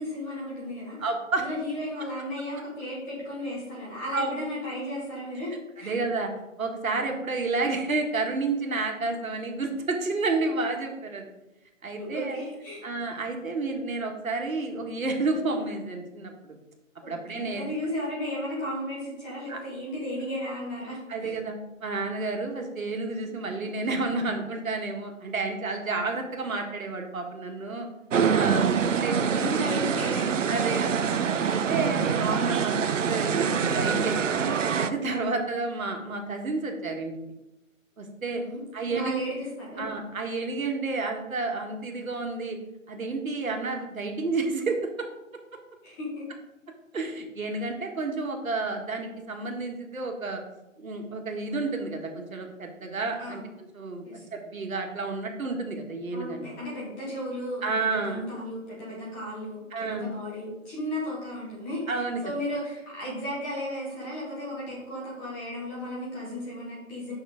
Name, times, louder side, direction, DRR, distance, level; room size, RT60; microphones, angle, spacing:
voice 1, 0.0-1.0 1.3-5.9 12.0-12.8 17.0-21.4 23.2-23.4 29.0-30.7 31.9-32.1 35.2-35.4 38.3-38.6 38.9-39.9 45.8-46.3 53.2-53.5 54.0-54.3 56.1-67.2, left 1 dB, 10° left, -6 dB, 1.2 m, -35 dB
voice 2, 1.0-1.4 4.1-4.3 5.8-6.3 6.6-11.3 11.8-12.4 12.8-16.5 17.1-17.6 19.5-19.6 21.1-27.9 28.3-29.6 30.5-31.0 31.4-34.4 34.7-37.1 38.0-38.4 38.7-39.1 39.8-42.6 42.9-44.8 46.9-50.4 50.8-53.4 53.7-56.5 57.6-58.2 59.7-60.1 61.9-62.2, right 3 dB, 80° right, 2 dB, 1.8 m, -30 dB
sound 1, 28.1-34.9, right 7 dB, 65° right, 0.6 m, -25 dB
7.3 x 5.9 x 3.6 m, 0.94 s
hypercardioid pair, 165°, 41 cm